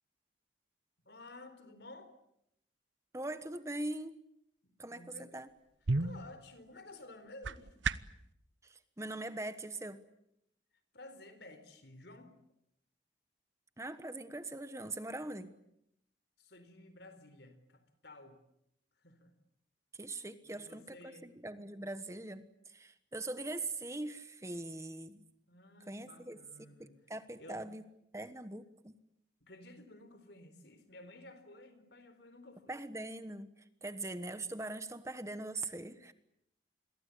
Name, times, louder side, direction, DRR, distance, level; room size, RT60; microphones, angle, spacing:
voice 1, 1.1-2.2 4.6-5.3 6.0-7.7 10.9-12.3 16.4-18.4 19.0-19.3 20.4-21.3 25.5-27.0 27.4-27.6 29.4-32.8, left 2 dB, 65° left, 11 dB, 4.2 m, -54 dB
voice 2, 3.1-4.2 4.8-5.5 8.6-10.0 13.8-15.5 19.9-25.2 25.9-26.4 27.1-27.8 28.1-28.9 32.7-36.1, right 2 dB, 15° right, 11 dB, 1.2 m, -42 dB
sound 1, 5.5-8.3, right 3 dB, 85° right, 1.0 m, -37 dB
28.0 x 22.5 x 8.6 m, 0.78 s
head